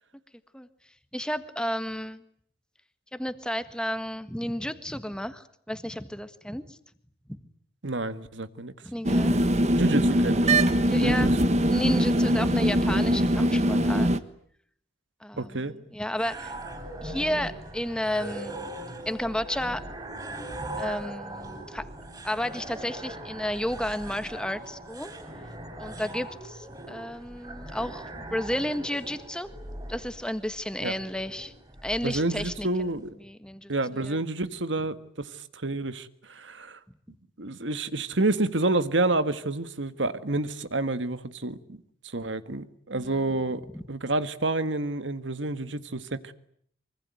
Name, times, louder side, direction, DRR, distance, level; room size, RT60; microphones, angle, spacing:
voice 1, 1.1-2.2 3.1-6.8 7.3-7.4 8.8-9.5 10.8-11.3 11.7-14.1 15.2-16.5 17.0-18.7 19.0-19.8 20.8-21.9 22.2-25.1 25.8-29.5 29.9-31.5 31.8-32.7 33.2-33.7 34.0-34.2 42.9-43.2 43.7-43.8, equal, 5° left, 1.5 m, -32 dB
voice 2, 7.8-8.7 9.7-10.6 11.0-11.3 15.4-15.7 30.8-31.0 32.0-33.2 33.7-36.8 37.4-46.3, right 2 dB, 90° right, 1.7 m, -29 dB
sound 1, 9.0-14.2, equal, 35° right, 1.4 m, -22 dB
sound 2, 16.2-33.1, right 1 dB, 20° right, 6.0 m, -40 dB
24.5 x 24.5 x 9.3 m
head